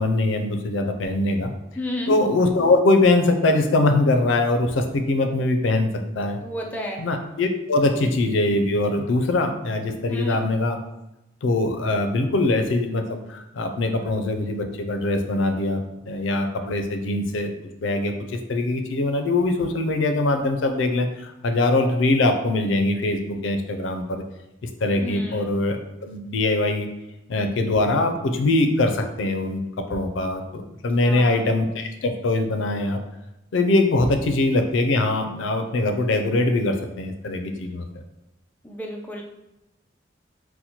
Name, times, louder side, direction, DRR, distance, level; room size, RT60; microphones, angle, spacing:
voice 1, 0.0-1.5 2.1-5.9 6.1-6.4 7.0-10.8 11.4-17.5 17.8-18.1 18.5-24.2 24.8-26.9 27.3-29.6 29.9-33.0 33.5-37.9, left 2 dB, 90° left, 5 dB, 0.4 m, -22 dB
voice 2, 1.8-2.2 6.4-7.0 10.1-10.4 25.0-25.5 31.0-31.5 38.6-39.2, left 1 dB, 10° left, 0 dB, 0.4 m, -31 dB
4.2 x 2.1 x 2.8 m, 0.93 s
head